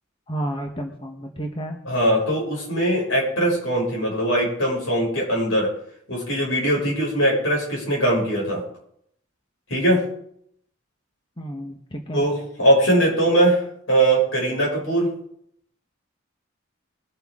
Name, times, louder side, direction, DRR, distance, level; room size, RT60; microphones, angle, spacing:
voice 1, 0.3-1.8 11.4-12.3, right 1 dB, 25° left, 2 dB, 1.2 m, -31 dB
voice 2, 1.9-5.7 6.1-8.6 9.7-10.1 12.1-15.1, right 1 dB, 80° left, -2 dB, 6.2 m, -21 dB
22.0 x 8.0 x 3.8 m, 0.70 s
head